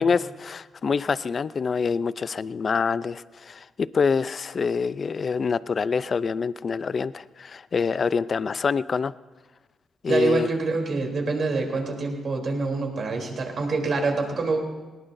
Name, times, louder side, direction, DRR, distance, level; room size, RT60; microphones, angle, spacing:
voice 1, 0.0-9.1 10.0-10.5, left 5 dB, 50° left, 16 dB, 0.4 m, -26 dB
voice 2, 10.1-14.6, right 3 dB, 55° right, 1 dB, 3.3 m, -26 dB
20.0 x 19.5 x 2.6 m, 1.2 s
cardioid pair, 80°, 0 cm